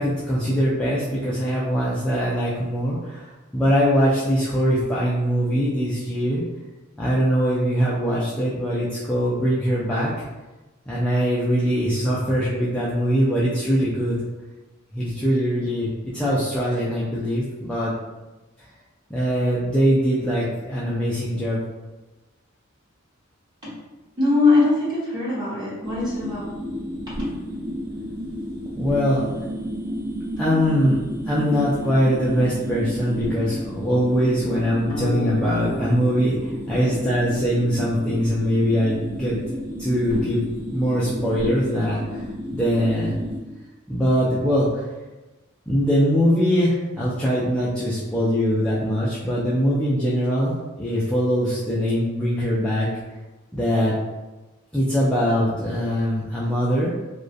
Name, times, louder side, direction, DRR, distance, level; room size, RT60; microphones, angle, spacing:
voice 1, 0.0-6.4 7.0-10.1 10.9-14.2 14.9-17.9 19.1-21.6 28.8-29.2 30.4-39.4 39.8-40.4 40.7-42.3 42.5-43.1 43.9-44.9 45.7-52.9 53.5-54.0 54.7-56.9, equal, 5° left, -9 dB, 0.3 m, -22 dB
voice 2, 24.1-26.5 27.2-27.3, left 3 dB, 20° right, -8 dB, 0.9 m, -21 dB
sound 1, 25.8-43.4, equal, 55° right, 0.8 m, -31 dB
sound 2, 34.9-37.2, left 5 dB, 80° left, 0.5 m, -35 dB
2.3 x 2.1 x 2.5 m, 1.1 s
head